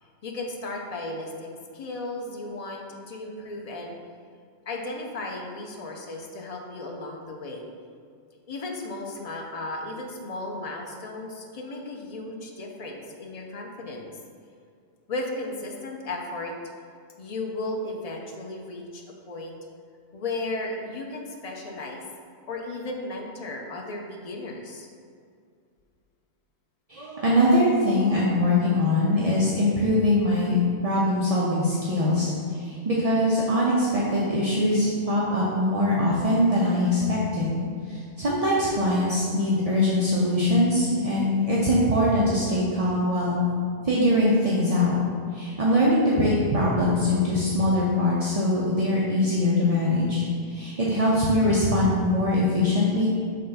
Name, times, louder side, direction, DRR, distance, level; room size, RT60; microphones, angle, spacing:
voice 1, 0.0-4.0 4.7-7.7 8.5-14.1 15.1-16.5 17.2-19.6 20.1-22.0 22.5-24.9, left 2 dB, 60° left, 0 dB, 0.4 m, -35 dB
voice 2, 26.9-32.3 32.6-37.6 37.9-43.4 43.8-44.9 45.3-53.1, left 1 dB, 40° right, -6 dB, 0.6 m, -22 dB
5.2 x 3.3 x 5.5 m, 2.3 s
omnidirectional pair, 1.5 m